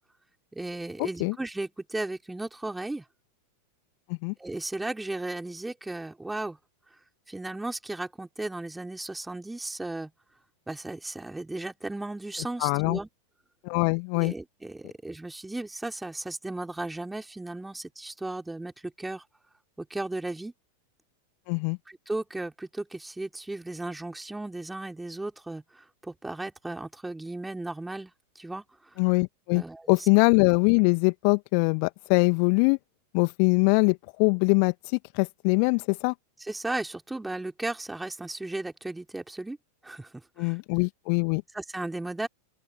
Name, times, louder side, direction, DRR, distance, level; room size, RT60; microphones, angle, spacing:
voice 1, 0.5-3.0 4.4-6.6 7.3-10.1 10.7-13.1 14.1-19.2 19.8-20.5 21.9-28.6 29.5-30.1 36.4-39.6 39.8-40.6 41.5-42.3, right 2 dB, 5° right, 4.6 m, -35 dB
voice 2, 12.6-13.0 13.6-14.3 21.5-21.8 29.0-32.8 33.1-34.7 35.1-36.1 40.4-41.4, left 40 dB or more, 45° left, 1.8 m, -23 dB
open air
figure-of-eight pair, 90°, 0 cm